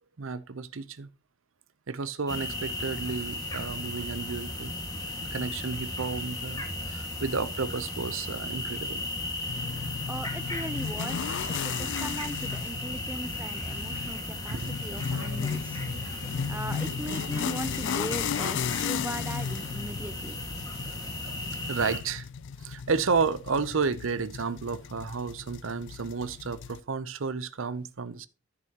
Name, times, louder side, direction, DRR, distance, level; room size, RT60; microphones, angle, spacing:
voice 1, 0.2-1.1 1.9-4.8 5.2-9.1 11.8-11.9 14.5-15.5 15.8-16.4 20.9-22.3 22.6-28.3, right 5 dB, 65° right, 0.6 m, -32 dB
sound 1, 2.3-22.0, left 1 dB, 20° left, 1.7 m, -36 dB
sound 2, 9.5-26.8, left 7 dB, 60° left, 0.3 m, -35 dB
voice 2, 10.1-20.4, right 1 dB, 10° right, 0.5 m, -39 dB
13.5 x 6.8 x 2.9 m
head